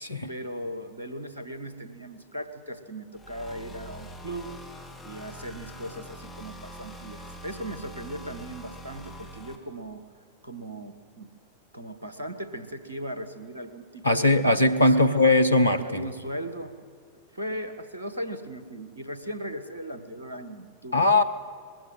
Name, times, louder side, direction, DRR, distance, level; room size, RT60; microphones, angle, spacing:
voice 1, 0.3-4.6 5.0-10.0 10.4-11.3 11.7-15.4 15.8-16.8 17.3-21.1, right 1 dB, 75° right, 10 dB, 1.7 m, -38 dB
sound 1, 3.1-9.6, equal, 15° left, 3.1 m, -44 dB
voice 2, 14.0-16.1 20.9-21.2, left 2 dB, 85° left, 10 dB, 1.1 m, -20 dB
20.5 x 16.0 x 9.4 m, 2.2 s
figure-of-eight pair, 90°, 0 cm